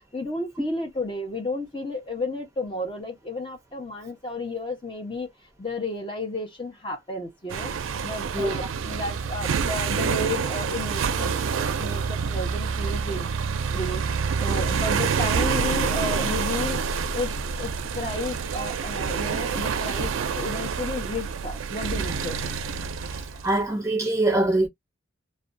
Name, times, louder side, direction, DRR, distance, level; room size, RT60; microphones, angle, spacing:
voice 1, 0.1-5.3 5.6-7.7 8.0-13.3 13.7-16.8 17.1-17.3 17.6-22.4, left 2 dB, 25° left, 0.7 m, -32 dB
sound 1, 7.5-23.6, right 5 dB, 80° right, 0.4 m, -27 dB
voice 2, 23.1-24.7, right 2 dB, 15° right, 0.6 m, -24 dB
2.5 x 2.2 x 2.5 m
head